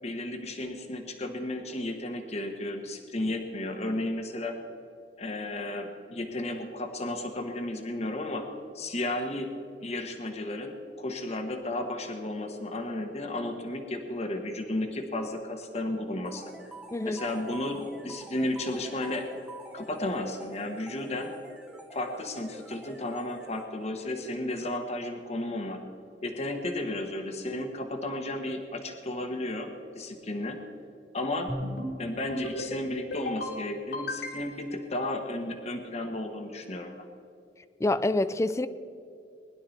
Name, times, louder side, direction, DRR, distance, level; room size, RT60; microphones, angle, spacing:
voice 1, 0.0-4.6 5.2-8.4 8.7-9.5 9.8-16.4 17.0-19.3 19.7-21.3 21.9-25.8 26.2-30.6 31.1-31.5 32.0-37.0, left 1 dB, 40° left, 5 dB, 1.3 m, -33 dB
sound 1, 16.2-24.0, right 2 dB, 5° right, 1.1 m, -47 dB
voice 2, 16.9-17.2 37.8-38.7, left 2 dB, 15° left, 14 dB, 0.4 m, -26 dB
sound 2, 31.5-31.9 32.3-32.7 33.1-33.5 33.9-34.7, left 1 dB, 75° left, 3.1 m, -34 dB
20.5 x 11.5 x 4.2 m, 2.5 s
head